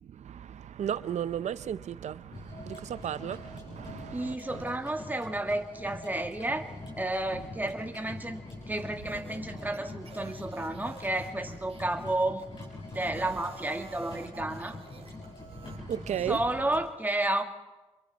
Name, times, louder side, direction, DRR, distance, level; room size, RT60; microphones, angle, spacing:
voice 1, 0.0-4.6 15.6-16.4, right 9 dB, 75° right, 0.7 m, -35 dB
sound 1, 2.3-16.8, left 2 dB, 40° left, 6.5 m, -44 dB
voice 2, 4.1-6.7 6.9-8.4 8.7-12.4 12.9-14.7 16.3-17.4, right 1 dB, 15° right, 1.9 m, -31 dB
sound 2, 9.0-12.5 12.9-15.8, right 5 dB, 55° right, 1.6 m, -50 dB
27.5 x 23.0 x 4.2 m
cardioid pair, 65°, 12 cm